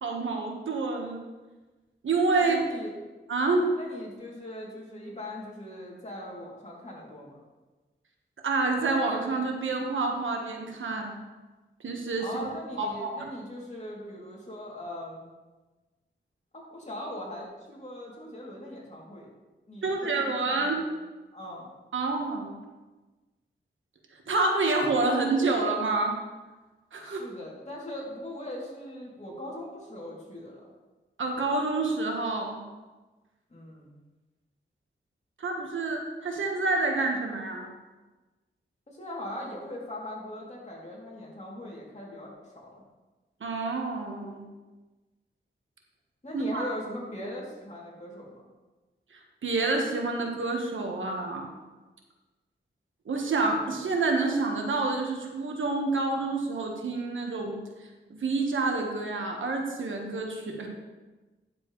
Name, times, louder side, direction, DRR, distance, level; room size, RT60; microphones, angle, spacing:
voice 1, 0.0-1.2 2.0-2.6 3.3-3.7 8.4-11.1 11.8-12.2 12.8-13.2 19.8-20.8 21.9-22.5 24.3-26.2 26.9-27.2 31.2-32.6 35.4-37.7 43.4-44.5 46.3-46.7 49.1-51.5 53.0-57.6 58.1-60.7, right 3 dB, 85° right, 2 dB, 1.4 m, -28 dB
voice 2, 2.4-2.9 3.7-7.4 12.2-15.2 16.5-19.3 19.7-20.9 21.3-21.7 27.0-30.7 33.5-33.9 38.9-42.7 46.2-48.4, left 1 dB, 35° left, -4 dB, 2.9 m, -40 dB
10.5 x 7.5 x 3.2 m, 1.2 s
cardioid pair, 65°, 20 cm